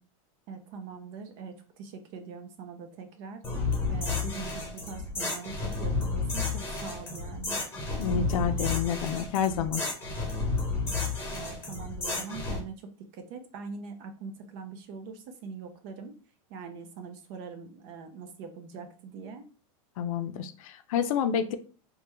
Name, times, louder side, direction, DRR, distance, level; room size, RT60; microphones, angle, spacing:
voice 1, 0.5-3.4 3.9-7.6 11.3-16.1 16.5-19.5, right 5 dB, 50° right, 7 dB, 0.6 m, -42 dB
sound 1, 3.4-12.6, left 3 dB, 15° left, 1.0 m, -31 dB
voice 2, 8.0-9.8 20.0-21.6, left 8 dB, 75° left, 9 dB, 0.5 m, -29 dB
3.3 x 2.2 x 3.0 m, 0.37 s
supercardioid pair, 145°, 18 cm